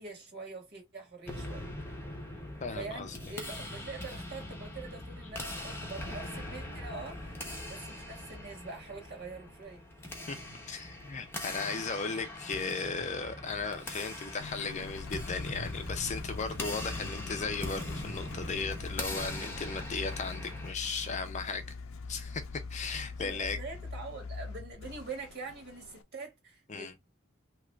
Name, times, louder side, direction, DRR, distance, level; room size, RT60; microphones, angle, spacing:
voice 1, 0.0-1.7 2.7-7.3 7.6-9.8 23.2-27.1, right 4 dB, 55° right, 1.5 m, -44 dB
sound 1, 1.3-20.7, left 1 dB, 10° left, 0.8 m, -41 dB
voice 2, 2.6-3.2 10.3-10.4 10.7-21.6 22.1-23.6 26.7-26.9, left 4 dB, 35° left, 0.5 m, -36 dB
Engine, 14.4-26.0, left 4 dB, 85° left, 0.5 m, -43 dB
2.9 x 2.4 x 3.2 m
head